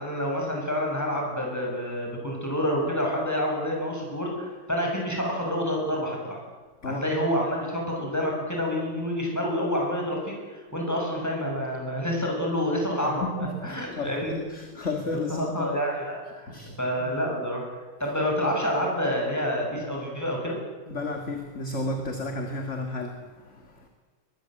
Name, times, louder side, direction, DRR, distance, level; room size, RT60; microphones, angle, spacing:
voice 1, 0.0-6.4 6.8-13.3 13.6-14.3 15.3-17.6 18.0-20.6, equal, 5° left, -1 dB, 7.3 m, -28 dB
voice 2, 13.2-15.7 16.5-17.1 20.9-23.9, left 2 dB, 35° left, 4 dB, 2.3 m, -33 dB
22.5 x 22.0 x 7.8 m, 1.4 s
omnidirectional pair, 2.2 m